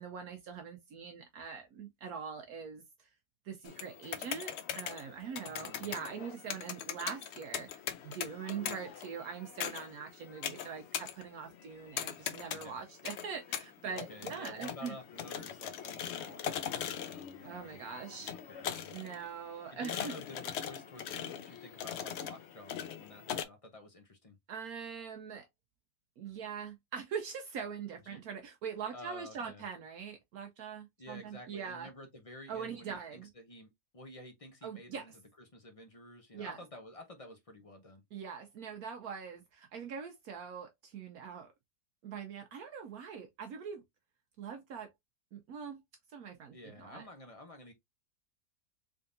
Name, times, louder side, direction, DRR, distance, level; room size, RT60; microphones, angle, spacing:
voice 1, 0.0-2.8 3.4-14.9 17.4-18.3 18.9-20.1 24.5-25.5 26.2-31.9 32.5-33.3 34.6-35.1 36.3-36.6 38.1-41.5 42.0-43.8 44.4-44.9 45.3-45.8 46.1-47.0, right 6 dB, 70° right, 1.1 m, -43 dB
sound 1, 3.6-23.4, left 9 dB, 80° left, 0.6 m, -41 dB
voice 2, 5.4-5.9 12.1-12.8 13.9-19.0 19.7-24.4 28.0-28.2 28.9-29.6 31.0-35.1 35.5-38.0 46.5-47.7, left 1 dB, 35° left, 0.5 m, -51 dB
3.6 x 3.5 x 2.5 m
omnidirectional pair, 1.7 m